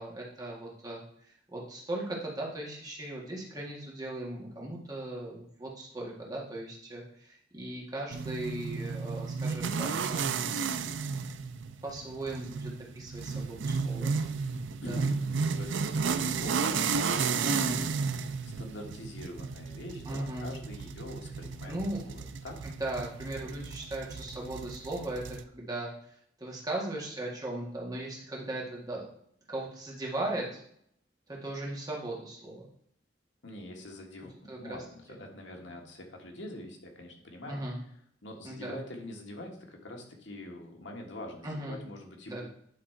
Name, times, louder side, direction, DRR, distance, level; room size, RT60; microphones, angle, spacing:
voice 1, 0.0-10.3 11.8-14.1 14.8-15.1 17.4-17.8 20.1-20.5 21.7-22.0 22.6-25.9 26.4-29.0 29.5-30.6 31.3-32.7 34.5-34.8 37.5-37.8 38.4-38.8 41.4-41.8 42.3-42.5, right 1 dB, 20° right, -3 dB, 1.9 m, -38 dB
sound 1, 8.1-25.4, right 5 dB, 85° right, 0.5 m, -33 dB
voice 2, 14.8-17.9 18.2-18.3 18.6-21.7 22.1-22.6 33.4-37.6 38.2-42.5, left 1 dB, 85° left, 2 dB, 1.6 m, -44 dB
9.8 x 3.7 x 4.5 m, 0.69 s
head